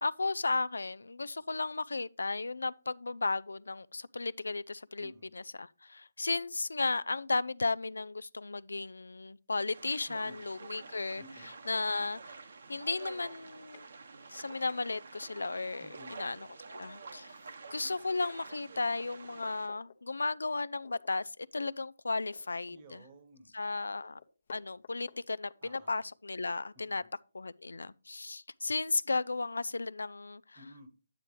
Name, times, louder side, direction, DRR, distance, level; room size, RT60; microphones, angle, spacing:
voice 1, 0.0-11.2 11.7-12.4 12.7-13.9 14.3-15.9 16.2-16.4 16.7-17.3 17.7-23.0 23.5-24.2 24.5-27.0 27.3-30.6, left 3 dB, 75° left, 0.3 m, -34 dB
voice 2, 5.0-5.3 10.1-10.4 11.2-11.5 15.8-16.2 22.7-23.5 25.6-26.0 26.7-27.1 30.5-30.9, right 1 dB, 30° right, 1.2 m, -54 dB
sound 1, 9.7-19.7, right 4 dB, 60° right, 1.1 m, -49 dB
sound 2, 9.8-10.0 11.5-11.6 12.1-12.2 12.4-12.7 13.3-13.4 13.7-13.9 14.3-14.8 16.1-16.4 17.1-17.8 18.3-18.4 18.7-20.0 20.8-21.2 21.5-21.6 22.0-23.1 23.5-23.6 23.9-26.4, left 6 dB, 50° left, 0.9 m, -56 dB
8.8 x 8.6 x 3.2 m
figure-of-eight pair, 150°, 0 cm